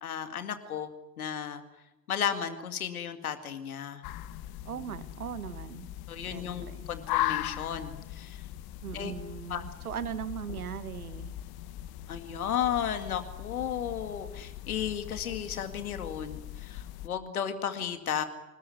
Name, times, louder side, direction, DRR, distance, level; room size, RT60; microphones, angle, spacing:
voice 1, 0.0-0.9 1.2-1.6 2.1-4.0 6.1-8.4 8.9-9.1 9.5-9.6 12.1-18.2, left 9 dB, 85° left, 9 dB, 2.2 m, -34 dB
sound 1, 4.0-17.1, left 13 dB, 60° left, 1.5 m, -39 dB
voice 2, 4.6-5.9 6.2-6.9 8.8-11.4, right 8 dB, 90° right, 14 dB, 1.3 m, -39 dB
27.0 x 20.5 x 9.4 m, 0.95 s
hypercardioid pair, 60°, 42 cm